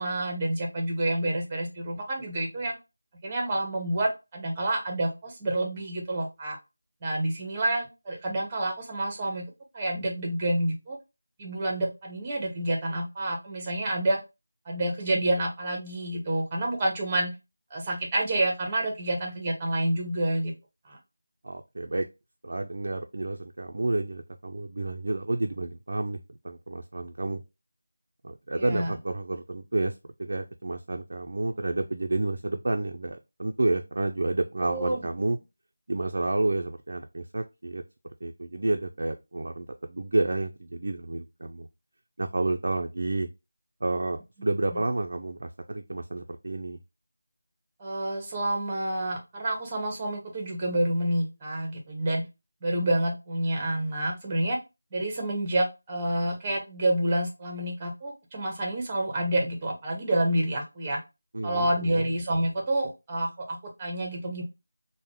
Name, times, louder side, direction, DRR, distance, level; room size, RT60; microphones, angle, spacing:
voice 1, 0.0-2.7 3.2-6.6 7.0-9.4 9.7-11.0 11.4-14.2 14.7-17.3 17.7-20.5 20.9-21.0 28.6-28.9 34.6-35.1 44.7-44.8 47.8-52.2 52.6-54.6 54.9-61.0 61.4-64.4, right 1 dB, 15° right, 0.7 m, -28 dB
voice 2, 21.4-22.1 22.4-27.4 28.2-35.4 35.9-37.8 38.2-41.7 42.2-43.3 43.8-46.8 61.3-62.0, right 2 dB, 55° right, 0.3 m, -30 dB
3.4 x 2.0 x 3.5 m
figure-of-eight pair, 175°, 0 cm